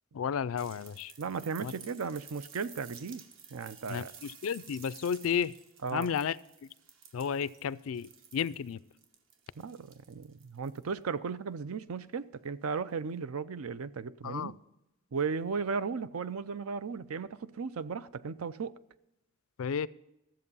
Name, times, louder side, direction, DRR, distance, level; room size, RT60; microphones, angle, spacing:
voice 1, 0.1-1.1 1.6-1.7 3.9-5.5 5.9-6.4 7.1-8.8 14.2-14.5 19.6-19.9, left 7 dB, 75° left, 20 dB, 0.4 m, -32 dB
sound 1, 0.6-10.9 12.3-12.4, right 6 dB, 65° right, 1.1 m, -53 dB
voice 2, 1.2-3.2 3.5-4.1 5.8-6.1 9.6-14.5 15.1-18.7, right 5 dB, 85° right, 15 dB, 0.5 m, -36 dB
13.5 x 7.7 x 5.5 m, 0.89 s
head